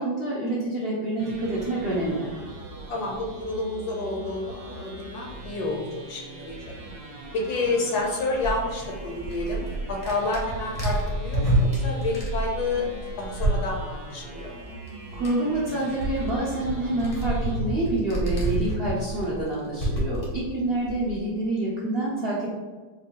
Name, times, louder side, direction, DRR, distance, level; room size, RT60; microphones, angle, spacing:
voice 1, 0.0-2.3 15.1-22.5, right 2 dB, 80° right, -6 dB, 0.5 m, -27 dB
sound 1, 1.2-17.6, right 2 dB, 55° right, 1.3 m, -41 dB
voice 2, 2.9-5.8 6.1-6.7 7.3-12.9 13.2-14.5, left 2 dB, 70° left, -1 dB, 1.0 m, -29 dB
sound 2, 8.4-14.0 14.9-15.0 15.1-21.2, right 1 dB, 45° left, 0.4 m, -28 dB
4.6 x 2.6 x 2.8 m, 1.3 s
omnidirectional pair, 2.1 m